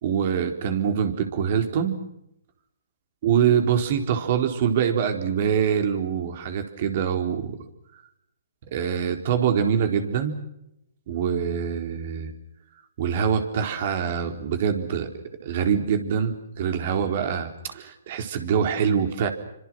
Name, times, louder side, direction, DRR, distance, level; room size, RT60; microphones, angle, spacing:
voice 1, 0.0-2.0 3.2-7.6 8.7-10.4 11.1-12.3 13.0-15.1 15.4-19.3, right 7 dB, 50° right, 6 dB, 4.2 m, -24 dB
29.5 x 25.5 x 6.2 m, 0.81 s
hypercardioid pair, 135°, 0 cm